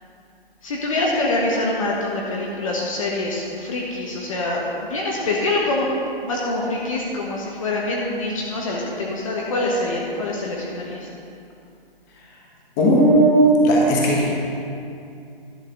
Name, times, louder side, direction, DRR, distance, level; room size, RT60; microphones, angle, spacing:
voice 1, 0.6-4.6 4.9-6.0 6.2-11.1, left 2 dB, 35° left, -3 dB, 1.1 m, -25 dB
voice 2, 12.8-14.3, right 1 dB, 15° left, -4 dB, 1.3 m, -15 dB
11.0 x 5.6 x 6.6 m, 2.5 s
hypercardioid pair, 165°, 29 cm